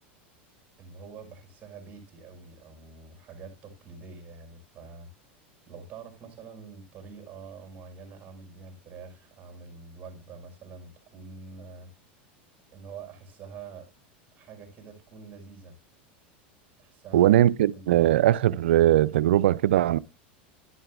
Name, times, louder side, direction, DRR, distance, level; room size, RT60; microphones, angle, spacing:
voice 1, 0.8-5.1 5.7-11.9 12.7-13.9 14.3-15.8 16.8-17.4 17.7-18.1, right 5 dB, 30° right, 5.7 m, -46 dB
voice 2, 17.1-20.0, right 13 dB, 85° right, 0.5 m, -20 dB
11.0 x 11.0 x 2.4 m
supercardioid pair, 115°, 6 cm